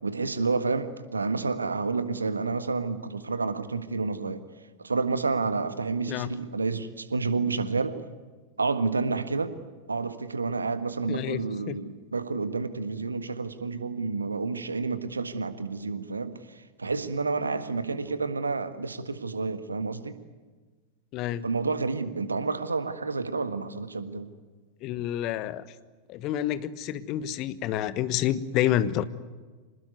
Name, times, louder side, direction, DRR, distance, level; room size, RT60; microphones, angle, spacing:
voice 1, 0.0-4.4 4.8-8.0 8.6-9.5 9.9-20.2 21.4-24.3, right 4 dB, 75° right, 11 dB, 1.6 m, -29 dB
voice 2, 11.1-11.8 21.1-21.5 24.8-25.6 26.1-29.0, left 12 dB, 40° left, 15 dB, 1.2 m, -28 dB
26.0 x 19.5 x 9.5 m, 1.4 s
figure-of-eight pair, 90°, 0 cm